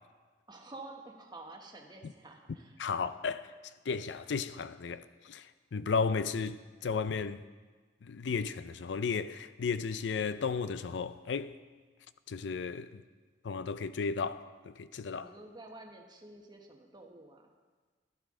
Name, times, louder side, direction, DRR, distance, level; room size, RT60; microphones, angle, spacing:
voice 1, 0.5-2.8 15.1-17.5, right 2 dB, 25° right, 1.1 m, -50 dB
voice 2, 2.8-3.5 3.9-5.5 5.7-7.4 8.0-11.5 12.3-13.0 13.4-15.3, left 5 dB, 90° left, 0.5 m, -34 dB
12.0 x 11.5 x 3.7 m
head